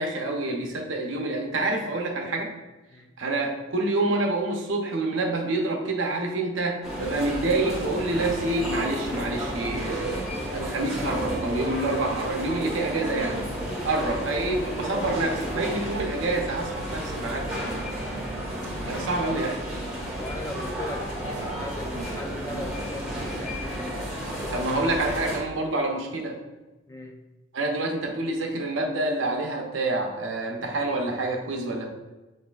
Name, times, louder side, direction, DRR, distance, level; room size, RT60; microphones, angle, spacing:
voice 1, 0.0-2.5 3.2-13.5 13.8-17.5 18.8-19.6 24.5-26.4 27.5-31.9, right 2 dB, 75° right, 2 dB, 0.8 m, -27 dB
sound 1, 6.8-25.4, equal, ahead, 1.5 m, -32 dB
voice 2, 14.0-14.4 20.1-23.9 26.9-27.2, left 1 dB, 15° left, 2 dB, 0.4 m, -39 dB
8.1 x 2.7 x 2.4 m, 1.1 s
head